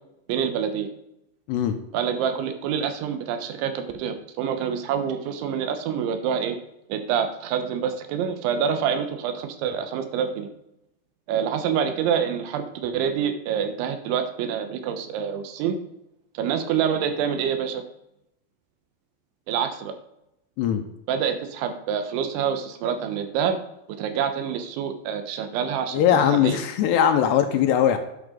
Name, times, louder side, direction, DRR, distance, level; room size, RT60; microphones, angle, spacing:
voice 1, 0.3-0.9 1.9-6.6 6.9-10.5 11.3-15.8 16.4-17.8 19.5-20.0 21.1-23.6 24.0-26.6, right 7 dB, 85° right, 8 dB, 3.5 m, -26 dB
voice 2, 25.9-28.0, left 9 dB, 80° left, 7 dB, 2.8 m, -20 dB
11.5 x 9.3 x 3.8 m, 0.83 s
omnidirectional pair, 5.2 m